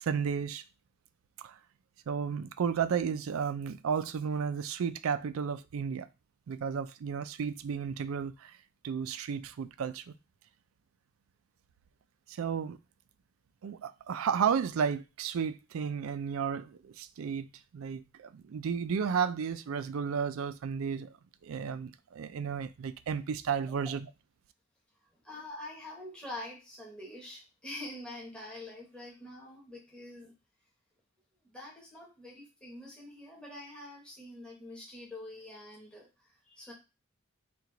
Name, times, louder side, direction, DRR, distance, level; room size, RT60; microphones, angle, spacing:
voice 1, 0.0-0.6 1.4-1.6 2.1-6.1 6.5-8.5 8.8-10.1 12.3-12.8 13.6-17.5 17.7-21.1 21.4-24.0, right 6 dB, 75° right, 0.4 m, -33 dB
voice 2, 25.1-30.3 31.4-36.7, left 1 dB, 5° left, 1.1 m, -45 dB
4.4 x 2.4 x 3.8 m
head